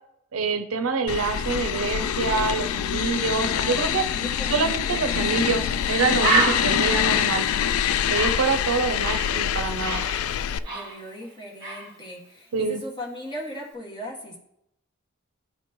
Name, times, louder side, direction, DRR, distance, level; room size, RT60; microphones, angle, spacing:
voice 1, 0.3-4.0 4.5-7.5 8.1-10.0 12.5-12.8, right 4 dB, 70° right, 8 dB, 0.6 m, -26 dB
sound 1, 1.1-10.6, left 9 dB, 75° left, 0.3 m, -25 dB
voice 2, 3.3-5.2 6.6-7.0 10.7-14.4, equal, 20° left, -3 dB, 1.7 m, -38 dB
Bird, 5.3-5.5 5.8-5.9 6.2-9.4 9.6-11.3 11.6-11.9, right 3 dB, 20° right, 2.2 m, -28 dB
12.0 x 4.4 x 3.0 m, 0.77 s
head